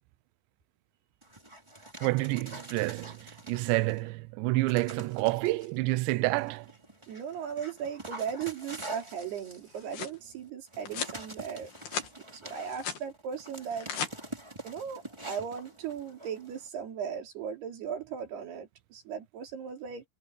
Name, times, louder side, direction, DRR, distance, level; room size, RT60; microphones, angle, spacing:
Dog, 1.2-4.1 4.7-5.7 6.3-16.7, right 1 dB, 10° right, 2.2 m, -46 dB
voice 1, 2.0-6.7, right 21 dB, 90° right, 3.0 m, -29 dB
voice 2, 7.1-11.7 12.3-13.9 14.6-20.1, right 7 dB, 70° right, 5.0 m, -37 dB
sound 1, 9.5-10.2 10.9-11.2 11.6-12.1 12.5-13.0 13.6-14.1, left 7 dB, 65° left, 4.9 m, -37 dB
omnidirectional pair, 5.0 m